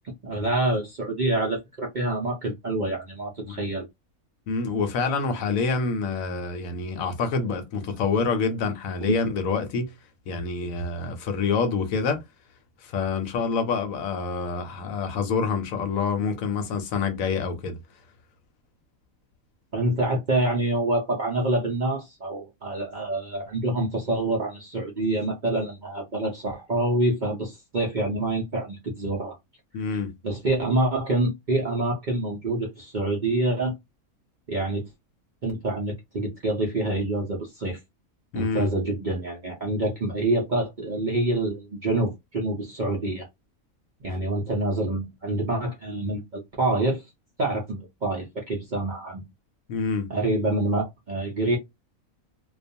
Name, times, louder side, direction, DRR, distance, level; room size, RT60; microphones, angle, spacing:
voice 1, 0.0-3.9 19.7-29.4 30.2-33.7 34.5-34.9 35.4-37.8 38.3-43.3 44.0-47.0 47.4-49.2 50.1-51.6, right 2 dB, 50° right, 0.6 m, -26 dB
voice 2, 4.5-9.9 10.3-12.2 12.8-17.8 29.7-30.1 38.3-38.7 49.7-50.1, left 4 dB, 70° left, 1.0 m, -27 dB
2.4 x 2.3 x 2.6 m
omnidirectional pair, 1.5 m